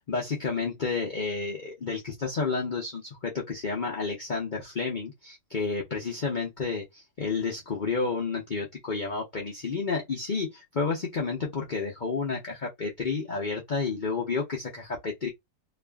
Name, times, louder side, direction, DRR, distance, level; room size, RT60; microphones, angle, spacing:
voice 1, 0.0-15.3, left 4 dB, 80° left, 0.4 m, -31 dB
2.9 x 2.4 x 2.3 m
omnidirectional pair, 1.9 m